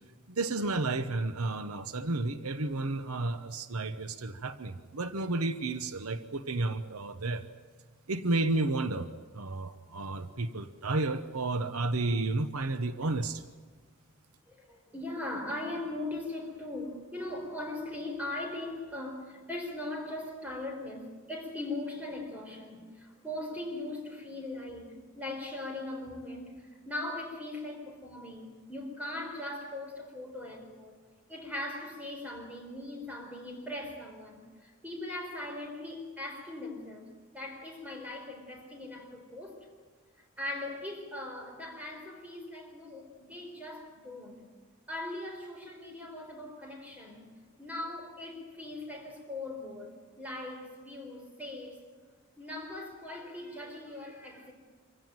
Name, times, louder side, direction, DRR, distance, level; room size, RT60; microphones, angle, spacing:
voice 1, 0.3-7.5 8.1-9.1 9.3-13.4, right 2 dB, 85° right, 1.0 m, -32 dB
voice 2, 14.5-31.0 31.3-39.7 40.4-44.4 44.9-47.3 47.6-51.9 52.4-54.5, left 1 dB, 5° right, 4.1 m, -40 dB
25.5 x 15.5 x 9.0 m
head